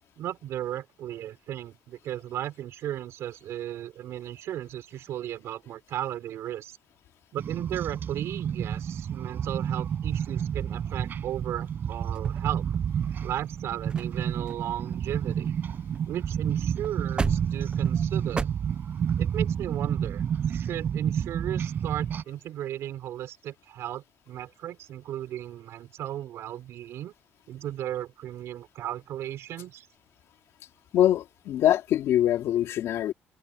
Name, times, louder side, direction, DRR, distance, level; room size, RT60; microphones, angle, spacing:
voice 1, 0.2-6.8 7.3-12.6 13.2-15.5 16.1-18.5 19.2-20.2 20.5-27.1 27.5-29.9, right 12 dB, 75° right, 4.9 m, -35 dB
sound 1, 7.4-22.2, right 8 dB, 45° right, 7.2 m, -30 dB
sound 2, 12.1-13.0 13.6-13.7 13.9-14.2 14.5-16.0 16.3-16.4 16.8-18.4, right 4 dB, 20° right, 0.9 m, -35 dB
voice 2, 30.9-33.1, left 12 dB, 75° left, 3.7 m, -23 dB
cardioid pair, 150°, 5 cm